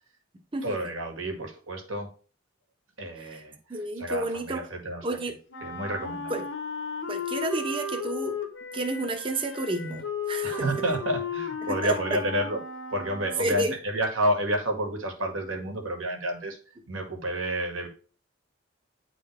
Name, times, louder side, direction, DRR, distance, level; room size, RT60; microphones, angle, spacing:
voice 1, 0.6-2.1 3.0-5.2 5.6-6.4 10.4-12.6 12.9-16.6 16.9-17.9, equal, 75° right, 1.7 m, -30 dB
voice 2, 3.7-4.7 5.0-5.4 6.3-6.4 7.1-8.4 8.7-10.7 11.6-12.0 13.4-13.7, right 2 dB, 25° right, 0.8 m, -30 dB
Wind instrument woodwind instrument, 5.5-13.6, left 4 dB, 65° left, 1.0 m, -35 dB
9.6 x 3.9 x 3.3 m
head